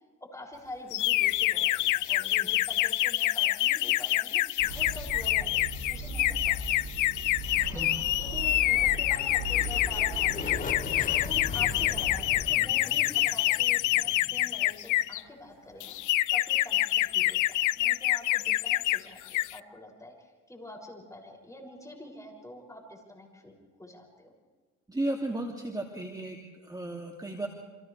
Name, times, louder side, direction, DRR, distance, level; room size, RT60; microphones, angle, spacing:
voice 1, 0.3-4.4 4.7-6.8 7.7-7.9 8.2-10.7 11.2-16.0 16.3-24.3, left 1 dB, 10° left, 0 dB, 6.9 m, -46 dB
sound 1, 0.9-15.2 15.8-19.0 19.3-19.6, left 16 dB, 80° left, 0.6 m, -27 dB
sound 2, 4.6-12.4, right 1 dB, 75° right, 5.5 m, -38 dB
sound 3, 7.5-15.2, left 6 dB, 25° left, 0.6 m, -42 dB
voice 2, 24.9-27.5, right 1 dB, 15° right, 1 dB, 2.7 m, -34 dB
29.5 x 26.0 x 3.4 m, 1.4 s
cardioid pair, 90°, 30 cm